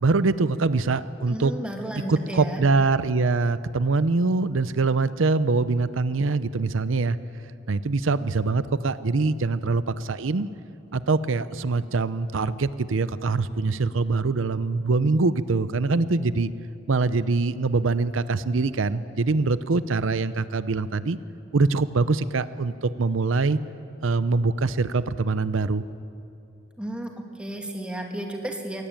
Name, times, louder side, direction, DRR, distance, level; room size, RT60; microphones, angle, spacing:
voice 1, 0.0-1.5 2.1-7.2 7.7-10.5 10.9-16.5 16.9-21.2 21.5-23.6 24.0-25.8, right 3 dB, 90° right, 15 dB, 0.7 m, -23 dB
voice 2, 1.3-2.6 26.8-28.9, right 1 dB, 5° right, 2 dB, 2.4 m, -33 dB
22.5 x 17.5 x 8.9 m, 2.7 s
head